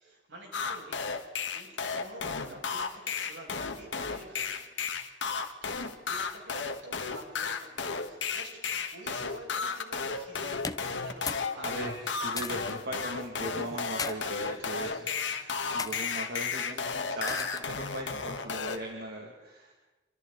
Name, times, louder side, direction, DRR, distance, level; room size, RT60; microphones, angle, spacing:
voice 1, 0.0-4.7 5.6-10.7 11.0-12.1, right 1 dB, 80° right, -1 dB, 6.9 m, -49 dB
sound 1, 0.5-18.8, left 5 dB, 80° left, 1.6 m, -33 dB
sound 2, 10.6-11.5 11.8-12.8 13.7-14.2 14.9-15.2 15.8-16.1 17.3-17.8, left 4 dB, 20° left, 0.8 m, -37 dB
voice 2, 11.5-19.7, right 1 dB, 60° right, 0 dB, 2.5 m, -39 dB
27.0 x 25.0 x 4.1 m, 1.1 s
head